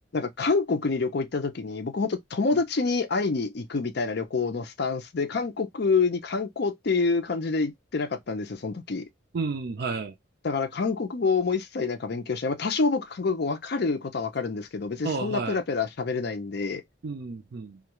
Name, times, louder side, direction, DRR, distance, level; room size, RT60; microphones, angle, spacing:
voice 1, 0.1-9.0 10.4-16.8, left 4 dB, 55° left, 0.5 m, -27 dB
voice 2, 9.3-10.1 15.0-15.6 17.0-17.8, right 4 dB, 55° right, 0.4 m, -31 dB
2.3 x 2.2 x 2.9 m
head